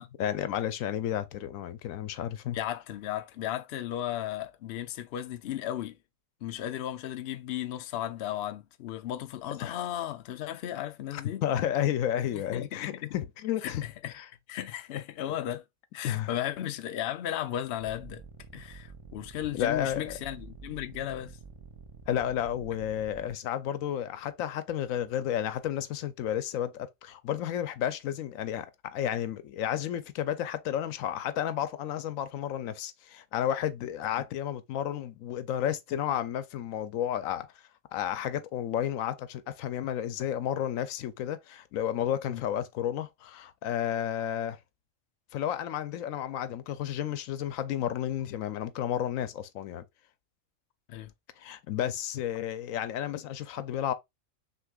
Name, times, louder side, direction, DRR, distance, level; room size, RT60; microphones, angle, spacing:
voice 1, 0.0-2.6 9.6-9.8 11.1-13.8 14.1-14.3 16.0-16.3 19.5-20.2 22.1-37.5 37.9-44.6 45.3-49.8 51.4-53.9, left 10 dB, 80° left, 1.0 m, -32 dB
voice 2, 2.5-6.0 6.4-11.4 12.3-13.2 13.6-14.1 14.5-15.6 15.9-18.2 18.5-21.4 34.1-34.2 42.3-42.4 50.9-51.1, left 12 dB, 65° left, 0.7 m, -35 dB
sound 1, 17.8-23.3, right 5 dB, 45° right, 0.4 m, -48 dB
6.0 x 3.0 x 2.3 m
omnidirectional pair, 1.4 m